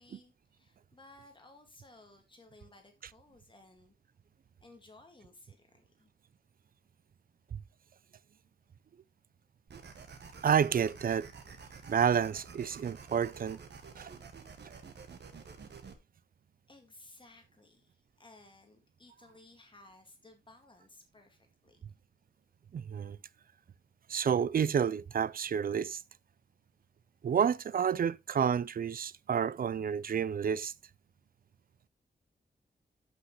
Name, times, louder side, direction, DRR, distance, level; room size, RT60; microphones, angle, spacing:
voice 1, 0.0-3.9 4.6-6.1 16.7-21.8, left 2 dB, 30° left, 1.9 m, -58 dB
sound 1, 9.7-15.9, right 5 dB, 85° right, 1.6 m, -50 dB
voice 2, 10.4-11.3 11.9-13.6 14.0-14.1 22.7-23.2 24.1-26.0 27.2-30.7, right 7 dB, 55° right, 0.4 m, -29 dB
13.5 x 6.1 x 3.0 m
wide cardioid pair, 145°, 17 cm